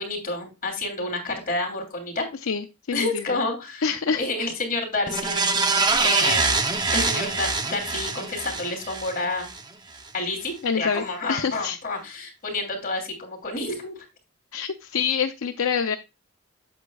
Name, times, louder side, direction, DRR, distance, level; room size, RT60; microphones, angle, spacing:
voice 1, 0.0-2.3 2.9-3.9 4.2-5.6 6.0-6.6 6.9-9.5 10.1-14.0, left 2 dB, 40° left, 4 dB, 2.9 m, -29 dB
voice 2, 2.5-3.4 3.8-4.5 10.6-11.0 11.3-11.8 14.5-16.0, left 6 dB, 70° left, 7 dB, 0.5 m, -26 dB
sound 1, 5.1-9.6 10.0-10.1, right 3 dB, 20° right, 0.7 m, -24 dB
8.0 x 7.8 x 2.3 m, 0.27 s
head